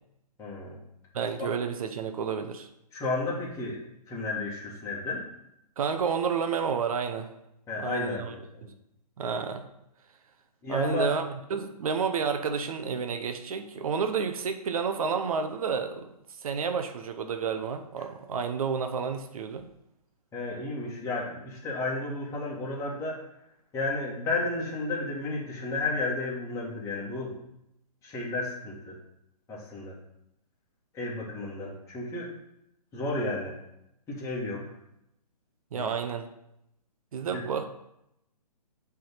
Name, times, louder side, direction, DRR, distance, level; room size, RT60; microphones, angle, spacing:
voice 1, 0.4-0.8 1.4-1.5 2.9-5.2 7.7-8.7 10.6-11.1 20.3-23.2 23.7-27.4 28.0-29.0 29.5-29.9 30.9-32.3 32.9-33.5 34.1-34.6 35.7-35.8 37.3-37.4, left 2 dB, 15° left, -5 dB, 1.9 m, -32 dB
voice 2, 1.1-2.7 5.8-7.3 7.8-8.3 8.6-8.7 9.2-9.7 10.7-16.1 16.4-19.7 35.7-36.3 37.1-37.7, right 6 dB, 60° right, 7 dB, 0.7 m, -30 dB
7.5 x 3.6 x 5.7 m, 0.83 s
hypercardioid pair, 140°, 21 cm